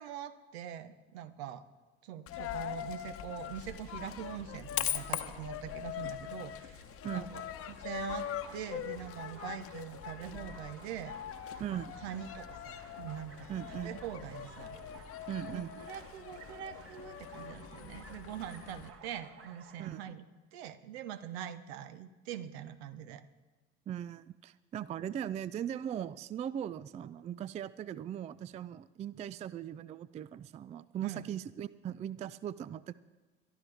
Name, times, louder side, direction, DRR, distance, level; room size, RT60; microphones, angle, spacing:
voice 1, 0.0-1.6 2.0-11.2 11.7-14.8 15.4-23.2 31.0-31.2, right 10 dB, 70° right, 12 dB, 1.0 m, -44 dB
Coin (dropping), 2.3-18.9, left 10 dB, 40° left, 1.0 m, -42 dB
sound 1, 8.2-20.1, right 5 dB, 40° right, 1.9 m, -56 dB
voice 2, 11.6-11.9 13.5-14.0 15.3-15.8 19.8-20.1 23.9-32.9, right 10 dB, 20° right, 18 dB, 0.3 m, -39 dB
22.0 x 12.0 x 3.4 m, 1.2 s
hypercardioid pair, 70°, 34 cm